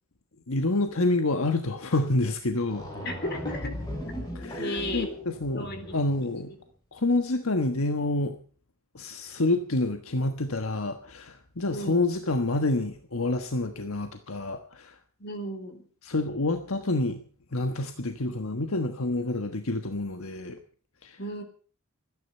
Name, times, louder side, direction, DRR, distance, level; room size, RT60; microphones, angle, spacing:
voice 1, 0.5-2.9 4.3-6.5 6.9-8.4 8.9-15.0 16.0-17.2 17.5-20.6 21.0-21.2, left 2 dB, 80° left, 7 dB, 1.3 m, -28 dB
sound 1, 2.3-2.4 2.6-6.4, equal, 20° left, 6.6 m, -37 dB
voice 2, 3.0-3.8 4.6-5.1 5.5-5.9 6.3-6.6 11.7-12.0 15.2-15.9 21.2-21.4, left 1 dB, 50° left, 7 dB, 3.6 m, -35 dB
25.0 x 10.5 x 5.5 m, 0.42 s
head